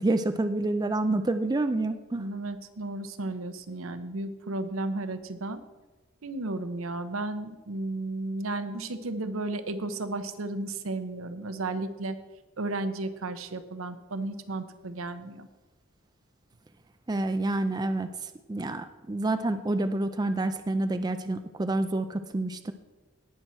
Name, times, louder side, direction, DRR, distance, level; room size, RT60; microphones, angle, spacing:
voice 1, 0.0-2.3 17.1-22.7, right 2 dB, 20° right, 10 dB, 0.4 m, -28 dB
voice 2, 2.1-5.6 6.2-12.2 12.6-15.5, right 2 dB, 80° right, 10 dB, 0.8 m, -34 dB
17.5 x 6.2 x 4.4 m, 1.2 s
head